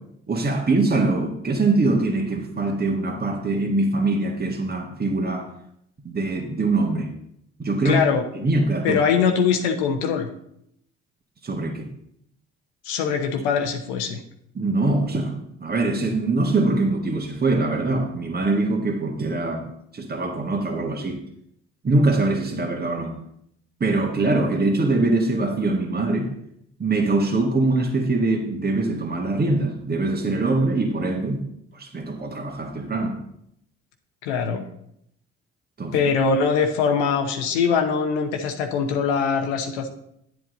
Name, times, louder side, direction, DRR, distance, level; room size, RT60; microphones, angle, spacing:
voice 1, 0.3-5.5 6.0-7.1 7.6-8.0 8.3-9.0 11.4-11.9 14.5-19.7 19.9-21.2 21.8-23.2 23.8-26.3 26.8-31.4 31.7-33.2 35.8-36.1, right 2 dB, 30° right, 2 dB, 1.7 m, -23 dB
voice 2, 7.8-8.4 8.8-10.3 12.8-14.2 34.2-34.7 35.9-39.9, left 6 dB, 85° left, 4 dB, 0.9 m, -22 dB
9.5 x 7.6 x 3.9 m, 0.73 s
hypercardioid pair, 55°, 33 cm